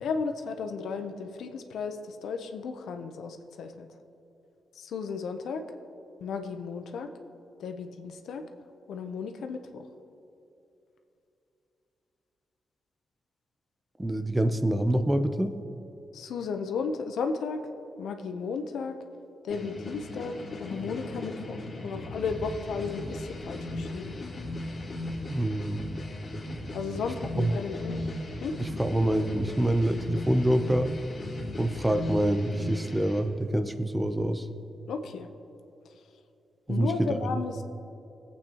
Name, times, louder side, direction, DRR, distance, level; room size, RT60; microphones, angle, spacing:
voice 1, 0.0-3.9 4.7-5.6 6.2-7.1 7.6-8.4 8.9-9.9 16.1-17.6 18.0-19.0 19.4-21.6 21.8-24.1 26.7-28.1 28.4-28.6 34.9-35.3 36.7-37.6, left 5 dB, 85° left, 6 dB, 0.7 m, -34 dB
voice 2, 14.0-15.5 25.3-25.8 27.4-27.6 28.6-30.9 31.6-34.5 36.7-37.4, right 1 dB, 15° right, 9 dB, 0.6 m, -26 dB
sound 1, 19.5-33.2, left 1 dB, 50° left, 2.3 m, -37 dB
17.5 x 8.4 x 3.0 m, 2.9 s
cardioid pair, 95°, 0 cm